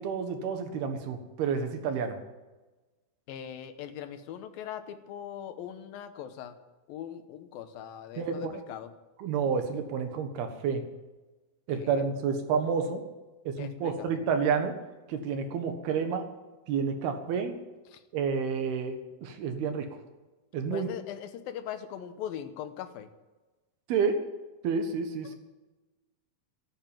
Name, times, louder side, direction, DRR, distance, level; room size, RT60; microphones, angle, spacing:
voice 1, 0.0-2.2 8.2-8.5 9.2-10.8 11.7-13.0 13.5-14.7 15.1-16.3 16.7-17.6 18.1-19.9 20.5-20.9 23.9-24.2 24.6-25.4, right 6 dB, 80° right, 7 dB, 3.5 m, -29 dB
voice 2, 3.3-6.6 6.9-8.9 11.7-12.1 13.6-14.2 17.9-18.0 20.7-23.1, left 9 dB, 75° left, 9 dB, 2.7 m, -40 dB
14.0 x 10.5 x 9.2 m, 1.2 s
omnidirectional pair, 4.4 m